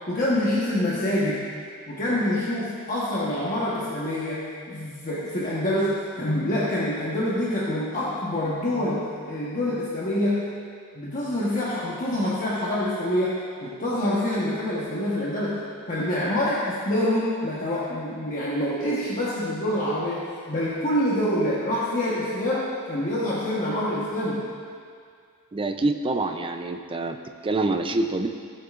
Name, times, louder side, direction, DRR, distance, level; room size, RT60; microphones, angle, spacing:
voice 1, 0.1-1.5 1.9-10.5 10.9-15.6 15.9-24.4, left 1 dB, 40° left, -7 dB, 1.2 m, -26 dB
voice 2, 25.5-27.2 27.4-28.3, right 2 dB, 25° right, 6 dB, 0.5 m, -26 dB
17.0 x 7.5 x 2.5 m, 2.2 s
head